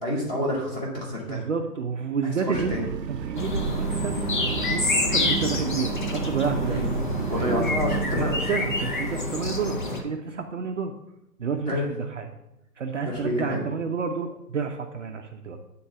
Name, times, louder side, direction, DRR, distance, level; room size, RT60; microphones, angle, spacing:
voice 1, 0.0-1.4 2.2-2.8 6.6-6.9 7.3-8.4 11.7-11.8 13.0-13.6, equal, 10° left, -7 dB, 1.3 m, -28 dB
voice 2, 1.3-2.8 3.1-6.8 7.4-7.7 8.1-10.9 11.4-12.3 12.8-15.6, right 5 dB, 50° right, 4 dB, 0.6 m, -30 dB
sound 1, 2.5-8.4, right 8 dB, 85° right, 0.6 m, -32 dB
sound 2, 3.3-10.0, left 2 dB, 30° left, 0.7 m, -28 dB
8.8 x 3.8 x 5.6 m, 0.86 s
hypercardioid pair, 155°, 48 cm